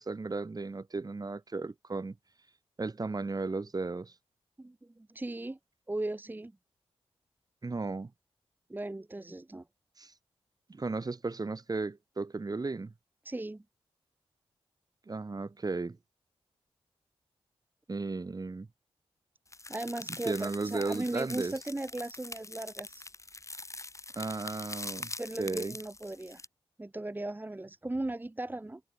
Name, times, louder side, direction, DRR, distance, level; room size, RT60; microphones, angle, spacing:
voice 1, 0.0-2.1 2.8-4.1 7.6-8.1 10.0-10.1 10.7-12.9 15.1-16.0 17.9-18.7 20.2-21.5 24.1-25.1 25.4-25.7, right 3 dB, 35° right, 1.7 m, -35 dB
voice 2, 4.6-5.6 5.9-6.5 8.7-9.7 13.2-13.6 19.7-23.1 25.2-26.4 26.8-28.8, right 2 dB, 20° right, 0.9 m, -37 dB
sound 1, 19.5-26.5, left 2 dB, 30° left, 3.5 m, -43 dB
cardioid pair, 55°, 11 cm